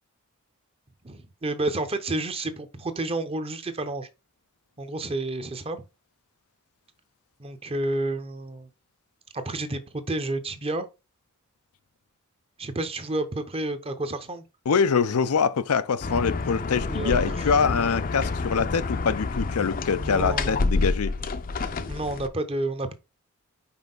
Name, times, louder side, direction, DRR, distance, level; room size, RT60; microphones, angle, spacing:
voice 1, 1.0-4.1 4.8-5.8 7.4-8.7 9.3-10.9 12.6-14.4 16.9-17.3 17.6-17.8 20.0-20.6 21.9-22.9, right 2 dB, 25° right, 0.8 m, -30 dB
voice 2, 14.7-21.1, left 5 dB, 90° left, 0.6 m, -24 dB
sound 1, 16.0-22.3, left 3 dB, 40° left, 0.5 m, -28 dB
5.7 x 4.6 x 3.9 m
head